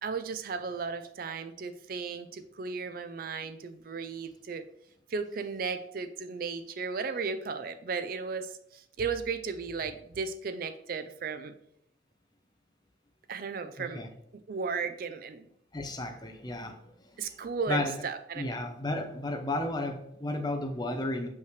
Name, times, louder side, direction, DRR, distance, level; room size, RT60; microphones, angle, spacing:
voice 1, 0.0-4.7 5.1-11.5 13.3-14.0 14.5-15.5 17.2-18.6, right 5 dB, 45° right, 0.4 m, -35 dB
voice 2, 13.8-14.1 15.7-16.9 17.2-17.3 17.7-18.0 18.4-21.3, left 1 dB, 20° left, 0.7 m, -33 dB
6.5 x 5.5 x 3.1 m
head